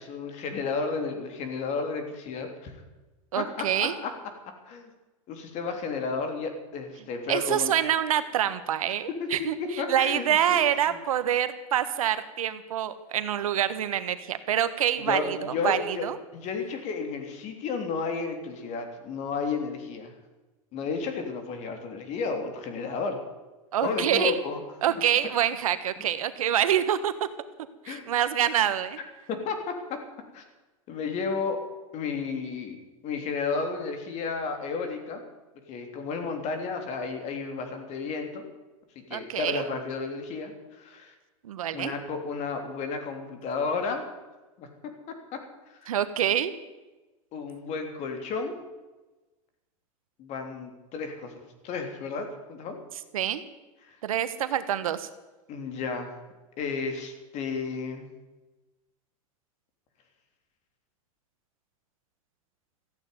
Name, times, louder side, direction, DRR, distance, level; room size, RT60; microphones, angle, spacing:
voice 1, 0.0-2.7 3.4-4.1 4.6-4.9 5.3-7.7 9.1-9.3 9.6-10.6 10.9-11.0 15.0-20.1 20.7-23.2 23.8-24.6 26.0-26.1 27.9-28.1 29.3-30.0 30.3-30.4 30.9-31.6 31.9-32.8 33.0-35.2 35.7-38.4 39.1-41.1 41.7-44.0 44.6-45.4 45.8-45.9 47.3-48.6 50.2-52.8 53.8-54.0 55.5-56.1 56.6-58.1, left 4 dB, 40° left, 5 dB, 3.4 m, -32 dB
voice 2, 3.3-3.9 7.3-9.6 9.9-16.2 23.7-24.3 24.8-27.1 27.8-29.0 39.1-39.6 41.4-41.9 45.9-46.5 53.1-53.4 54.0-55.1, right 10 dB, 90° right, 12 dB, 1.3 m, -26 dB
14.5 x 9.1 x 9.4 m, 1.1 s
supercardioid pair, 125°, 17 cm